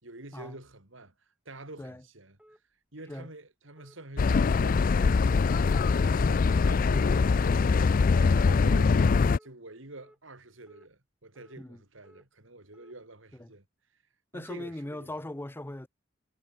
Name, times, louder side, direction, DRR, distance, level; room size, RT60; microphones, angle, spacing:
voice 1, 0.0-2.6 2.9-5.2 5.6-9.0 9.4-13.6 14.3-15.1, right 2 dB, 75° right, 4.1 m, -47 dB
sound 1, 2.4-2.6 3.1-3.3 3.8-4.0 4.4-4.7 5.1-5.4 5.8-6.0 6.5-6.7 7.2-7.4 7.9-8.1 8.6-8.8 9.3-9.5 10.0-10.2 10.7-10.9 11.3-11.6 12.0-12.2 12.7-12.9, equal, 5° right, 3.3 m, -58 dB
sound 2, 4.2-9.4, left 4 dB, 45° left, 0.4 m, -23 dB
voice 2, 14.3-15.9, left 1 dB, 10° left, 0.7 m, -40 dB
head